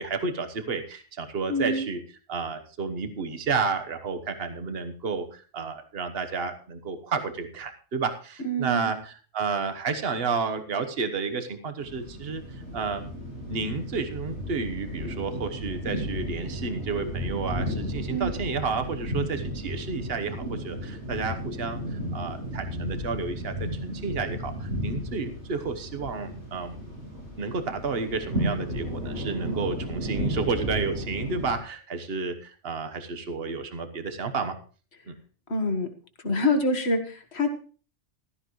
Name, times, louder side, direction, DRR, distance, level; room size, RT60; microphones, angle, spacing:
voice 1, 0.0-2.0 2.3-13.0 13.5-26.8 27.4-34.6 35.1-35.2, right 4 dB, 55° right, 8 dB, 1.4 m, -31 dB
voice 2, 1.5-1.9 8.4-8.9 18.1-18.3 35.5-35.9 36.2-37.5, left 1 dB, 60° left, 6 dB, 1.9 m, -26 dB
sound 1, 11.8-31.6, equal, 80° right, 7.7 m, -34 dB
15.5 x 13.0 x 3.1 m, 0.38 s
omnidirectional pair, 1.2 m